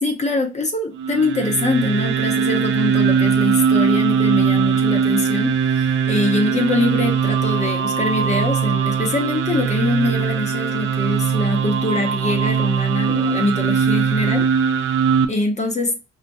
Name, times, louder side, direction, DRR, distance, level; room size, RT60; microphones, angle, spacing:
voice 1, 0.0-14.5 15.3-16.0, left 2 dB, 35° left, 0.8 m, -23 dB
sound 1, 0.9-15.2, right 6 dB, 85° right, 0.5 m, -20 dB
4.6 x 2.1 x 2.6 m
cardioid pair, 90°, 20 cm